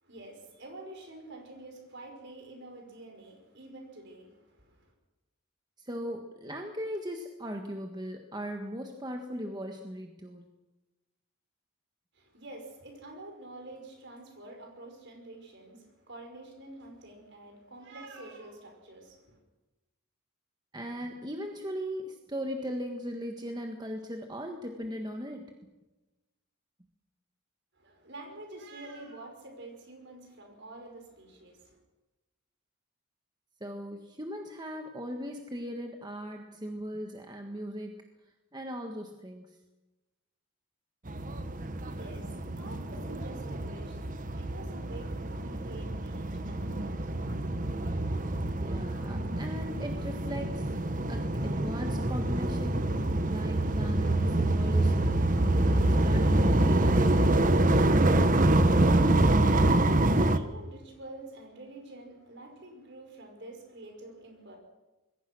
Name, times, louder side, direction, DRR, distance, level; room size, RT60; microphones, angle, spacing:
voice 1, 0.0-4.9 12.1-19.4 27.8-31.8 41.6-48.7 59.1-64.6, right 2 dB, 55° right, 3 dB, 5.7 m, -48 dB
voice 2, 5.8-10.5 20.7-25.5 33.6-38.0 38.5-39.6 48.6-50.7 51.1-55.3 55.7-57.7, equal, 20° right, 3 dB, 1.5 m, -38 dB
sound 1, 41.1-60.4, right 1 dB, 35° right, 1.2 m, -26 dB
26.0 x 21.5 x 6.2 m, 1.1 s
head